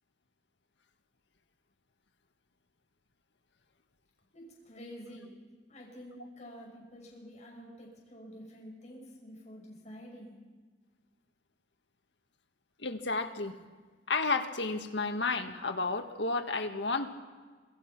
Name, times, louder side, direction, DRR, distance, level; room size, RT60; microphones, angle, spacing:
voice 1, 4.3-5.3 5.7-10.3, equal, 40° left, -2 dB, 7.0 m, -49 dB
voice 2, 12.8-13.6 14.1-17.2, left 3 dB, 90° left, 7 dB, 1.7 m, -32 dB
27.5 x 19.0 x 6.1 m, 1.4 s
head